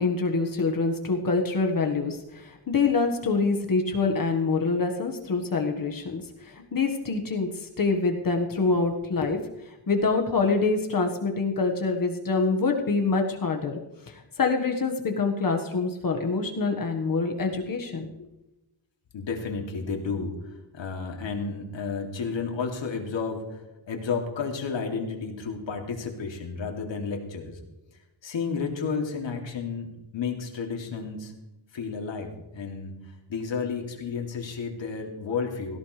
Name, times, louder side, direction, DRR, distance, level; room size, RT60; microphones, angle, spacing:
voice 1, 0.0-9.4 9.7-13.8 14.1-18.1, left 4 dB, 45° left, 2 dB, 1.5 m, -26 dB
voice 2, 19.1-20.3 20.7-27.6 28.2-31.3 31.7-33.0 33.3-35.8, left 5 dB, 70° left, 1 dB, 2.7 m, -32 dB
17.0 x 17.0 x 3.3 m, 0.96 s
wide cardioid pair, 150°, 46 cm